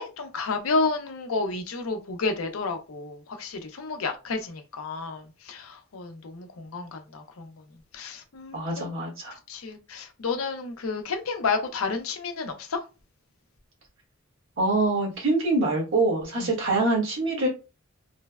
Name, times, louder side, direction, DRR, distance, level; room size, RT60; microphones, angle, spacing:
voice 1, 0.0-7.5 7.9-8.9 9.3-12.8 16.4-16.5, left 4 dB, 80° left, 0.6 m, -31 dB
voice 2, 8.5-9.4 14.6-17.5, right 2 dB, 65° right, 1.4 m, -25 dB
3.1 x 2.1 x 2.3 m
head